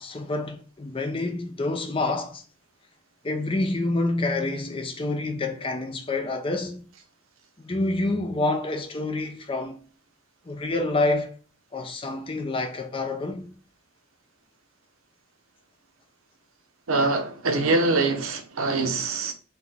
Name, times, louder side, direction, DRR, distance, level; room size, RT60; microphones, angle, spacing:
voice 1, 0.0-2.4 3.2-6.9 7.6-9.8 10.5-11.3 11.7-13.5, left 2 dB, 25° left, 0.5 m, -27 dB
voice 2, 16.9-19.3, right 3 dB, 85° right, 0.8 m, -24 dB
3.7 x 2.9 x 3.4 m
head